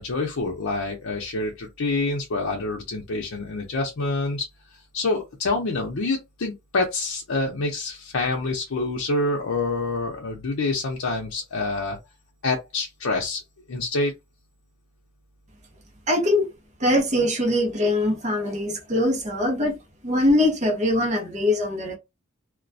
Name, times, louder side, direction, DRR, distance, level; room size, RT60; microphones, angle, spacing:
voice 1, 0.0-4.5 4.9-12.0 12.4-13.4 13.7-14.1, left 3 dB, 80° left, 0.6 m, -27 dB
voice 2, 16.1-16.5 16.8-19.8 20.0-22.0, left 1 dB, 35° right, 0.8 m, -22 dB
2.3 x 2.2 x 2.6 m
head